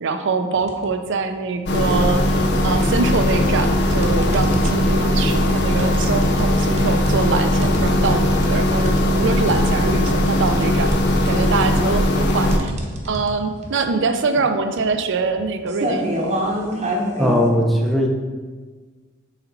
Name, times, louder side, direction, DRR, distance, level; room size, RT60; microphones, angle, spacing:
voice 1, 0.0-10.9 11.3-12.7 13.0-16.3, right 4 dB, 60° right, 8 dB, 0.6 m, -24 dB
sound 1, 0.5-0.9 1.3-2.2 2.8-17.5, equal, 35° right, 0.9 m, -29 dB
sound 2, 1.7-12.6, left 1 dB, 55° left, 0.6 m, -19 dB
voice 2, 17.2-18.1, equal, ahead, 0 dB, 0.7 m, -18 dB
7.0 x 4.2 x 4.1 m, 1.4 s
head